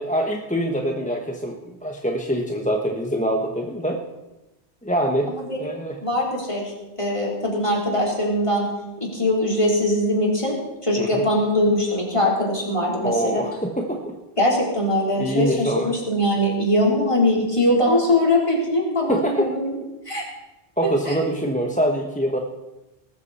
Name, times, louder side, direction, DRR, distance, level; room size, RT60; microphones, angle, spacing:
voice 1, 0.0-4.0 4.8-5.3 5.6-6.0 11.0-11.2 13.0-14.2 15.2-15.9 19.1-19.5 20.8-22.4, right 1 dB, 10° left, 1 dB, 1.0 m, -24 dB
voice 2, 5.3-8.7 9.1-10.5 10.8-13.4 14.4-19.8 20.1-20.2 20.8-21.2, left 1 dB, 30° left, -3 dB, 4.0 m, -22 dB
19.5 x 13.5 x 4.3 m, 0.99 s
omnidirectional pair, 1.1 m